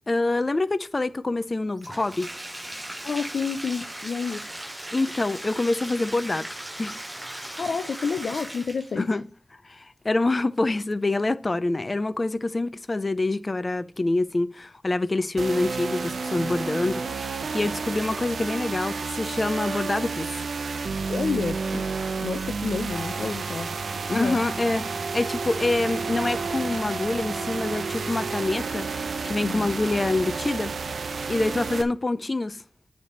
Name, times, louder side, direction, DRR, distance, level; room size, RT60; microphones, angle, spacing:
voice 1, 0.1-2.3 4.9-6.5 6.8-7.0 7.3-7.6 9.0-9.2 9.6-17.0 17.5-20.5 24.1-28.9 29.3-30.7 31.3-32.6, left 2 dB, 30° left, 0.5 m, -26 dB
Bathtub (filling or washing), 1.8-9.0, right 1 dB, 15° right, 0.7 m, -38 dB
voice 2, 3.0-4.4 7.6-9.1 21.1-21.9 22.2-23.7 24.1-24.4 29.4-29.7, left 5 dB, 90° left, 0.5 m, -29 dB
sound 1, 15.4-31.8, right 4 dB, 85° right, 0.6 m, -30 dB
9.7 x 3.3 x 6.6 m
wide cardioid pair, 105°, 0 cm